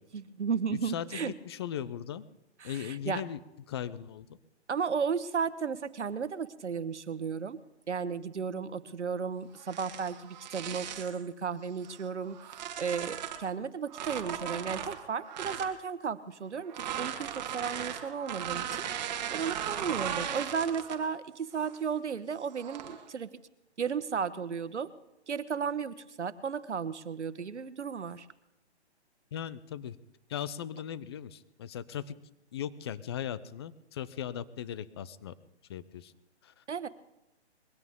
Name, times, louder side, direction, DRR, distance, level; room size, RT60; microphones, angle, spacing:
voice 1, 0.1-1.3 2.6-3.2 4.7-7.6 7.9-12.4 12.8-18.7 19.3-23.3 23.8-24.9 25.3-28.3 36.7-36.9, right 6 dB, 85° right, 14 dB, 1.3 m, -34 dB
voice 2, 0.7-2.3 2.6-3.4 3.7-4.3 29.3-30.0 30.3-32.1 32.5-35.3 35.7-36.1 36.4-36.9, left 10 dB, 25° left, 17 dB, 0.5 m, -38 dB
sound 1, 9.6-11.2 11.8-13.5 13.9-15.8 16.6-21.1 21.5-21.9 22.5-23.0, right 9 dB, 40° right, 1.9 m, -37 dB
22.0 x 16.5 x 3.7 m, 0.92 s
hypercardioid pair, 145°, 34 cm